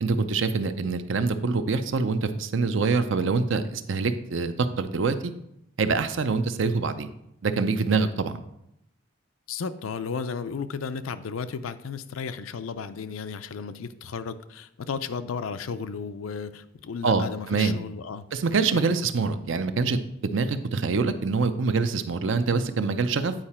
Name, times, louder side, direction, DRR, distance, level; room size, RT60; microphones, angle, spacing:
voice 1, 0.0-5.3 5.8-7.1 7.4-8.4 17.0-17.8 18.3-23.3, right 4 dB, 65° right, 10 dB, 0.5 m, -25 dB
voice 2, 9.5-18.3 18.7-18.9, left 5 dB, 85° left, 12 dB, 0.5 m, -34 dB
9.0 x 4.8 x 4.3 m, 0.79 s
head